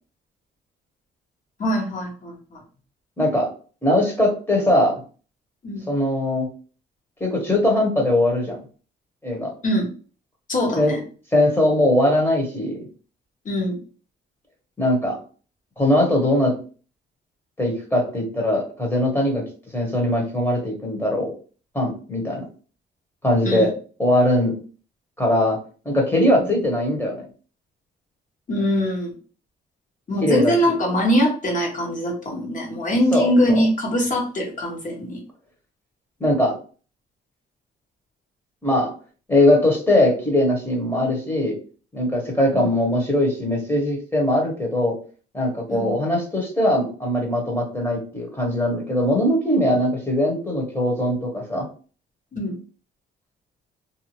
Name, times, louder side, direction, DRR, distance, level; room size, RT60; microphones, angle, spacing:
voice 1, 1.6-2.6 5.6-5.9 9.6-9.9 10.5-11.0 13.4-13.8 23.4-23.7 26.4-26.5 28.5-29.1 30.1-35.2 42.5-42.7 45.7-45.9 52.3-52.6, equal, 40° left, 0 dB, 1.3 m, -22 dB
voice 2, 3.2-3.5 3.8-5.0 5.9-6.5 7.2-8.6 9.2-9.5 10.8-11.0 11.3-12.8 14.8-15.2 15.8-16.5 17.6-19.4 19.7-21.3 21.7-22.4 23.2-23.7 24.0-24.5 25.2-25.6 25.8-27.2 30.2-30.8 33.1-33.7 36.2-36.6 38.6-38.9 39.3-41.5 41.9-45.0 45.3-51.7, left 1 dB, 10° left, 0 dB, 1.2 m, -20 dB
2.7 x 2.3 x 3.0 m, 0.38 s
cardioid pair, 90°, 20 cm